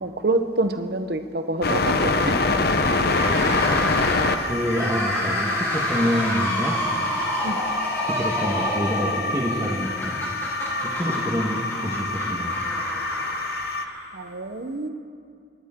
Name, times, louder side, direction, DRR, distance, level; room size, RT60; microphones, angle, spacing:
voice 1, 0.0-2.4 2.9-3.0 7.4-7.6 12.0-12.1 14.1-14.9, right 2 dB, 55° right, 8 dB, 1.0 m, -27 dB
sound 1, 1.6-13.9, left 3 dB, 50° left, 0.8 m, -26 dB
sound 2, 3.0-14.3, equal, 10° left, 4.3 m, -29 dB
voice 2, 4.5-6.8 8.1-10.2 11.0-12.5, equal, 15° right, 0 dB, 1.4 m, -27 dB
28.5 x 13.5 x 3.8 m, 2.3 s
head